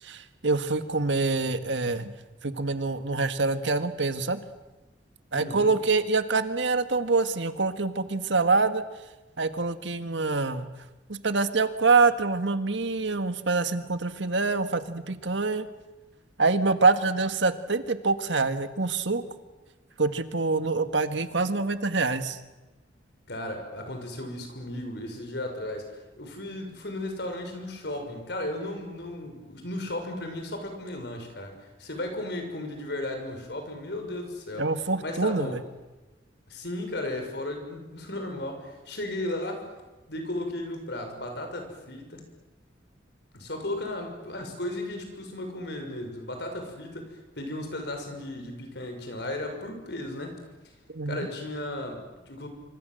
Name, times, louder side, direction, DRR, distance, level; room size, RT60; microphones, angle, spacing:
voice 1, 0.0-2.1 2.4-4.4 5.3-8.8 9.4-10.7 11.1-15.7 16.4-19.2 20.0-22.4 34.6-35.6 50.9-51.2, right 3 dB, 75° right, 10 dB, 1.7 m, -25 dB
voice 2, 5.3-5.7 23.3-34.7 35.0-35.6 36.5-39.7 40.1-42.2 43.3-50.4 51.1-52.5, left 1 dB, 60° left, 5 dB, 6.5 m, -35 dB
27.0 x 26.0 x 7.9 m, 1.1 s
head